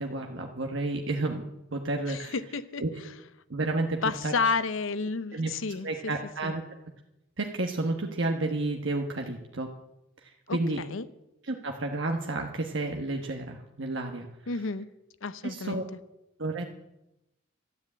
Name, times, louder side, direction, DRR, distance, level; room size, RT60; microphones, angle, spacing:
voice 1, 0.0-1.4 1.7-2.3 2.8-2.9 3.5-4.5 5.3-5.5 5.8-6.6 7.4-9.7 10.2-10.8 11.5-14.3 15.4-15.8 16.4-16.6, right 2 dB, 65° right, 3 dB, 1.2 m, -31 dB
voice 2, 2.1-2.8 4.0-5.9 6.4-6.5 10.5-11.1 14.5-14.9 15.2-15.8, left 4 dB, 70° left, 14 dB, 0.7 m, -31 dB
13.0 x 9.7 x 8.6 m, 0.91 s
head